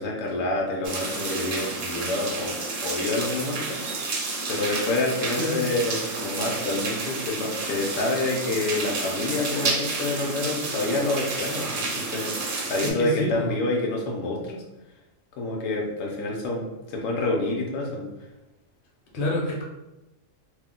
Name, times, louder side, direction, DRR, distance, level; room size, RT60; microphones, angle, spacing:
voice 1, 0.0-2.6 2.8-3.8 4.5-12.3 12.6-14.6 15.4-18.1, left 2 dB, 75° left, -1 dB, 1.0 m, -28 dB
sound 1, 0.8-12.9, right 3 dB, 60° right, 0.6 m, -30 dB
voice 2, 12.8-13.5 19.1-19.6, left 1 dB, 50° left, -3 dB, 0.8 m, -27 dB
2.6 x 2.1 x 3.6 m, 0.97 s
omnidirectional pair, 1.4 m